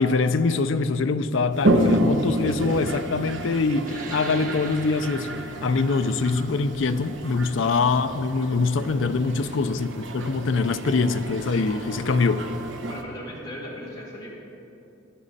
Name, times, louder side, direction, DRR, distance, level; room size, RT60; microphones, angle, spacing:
voice 1, 0.0-5.3 5.6-12.5, left 4 dB, 65° left, 0.5 m, -24 dB
Toilet flush, 1.5-13.0, right 1 dB, 65° right, 1.0 m, -29 dB
sound 1, 3.8-8.9, right 3 dB, 45° right, 1.2 m, -42 dB
voice 2, 9.4-9.8 12.9-14.3, left 1 dB, 20° left, 2.4 m, -38 dB
16.5 x 11.0 x 4.1 m
head